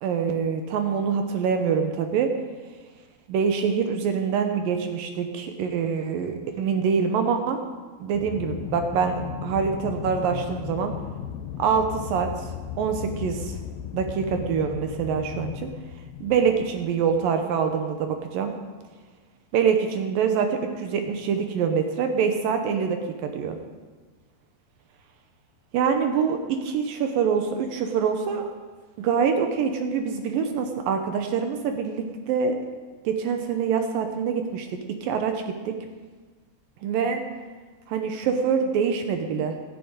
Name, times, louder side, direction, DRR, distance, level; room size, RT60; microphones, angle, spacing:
voice 1, 0.0-2.3 3.3-7.6 8.0-10.9 11.6-12.3 12.8-13.6 13.9-15.7 16.2-18.5 19.5-23.6 25.7-28.5 29.0-32.6 33.1-35.7 36.8-37.2 37.9-39.6, right 6 dB, 75° right, 5 dB, 2.1 m, -25 dB
Aircraft, 8.1-17.6, left 9 dB, 90° left, 1.9 m, -36 dB
12.5 x 8.3 x 8.9 m, 1.4 s
omnidirectional pair, 5.1 m